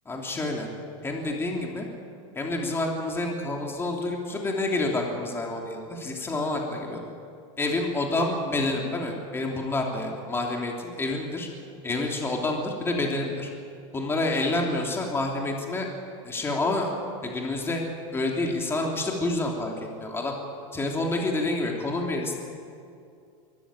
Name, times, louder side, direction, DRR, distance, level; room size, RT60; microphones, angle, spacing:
voice 1, 0.0-0.7 1.0-1.9 2.3-7.1 7.6-11.5 11.8-13.5 13.9-15.9 16.2-16.9 17.2-17.8 18.1-20.3 20.7-22.3, left 2 dB, 15° left, 0 dB, 3.2 m, -28 dB
23.0 x 14.0 x 9.0 m, 2.4 s
supercardioid pair, 130°, 17 cm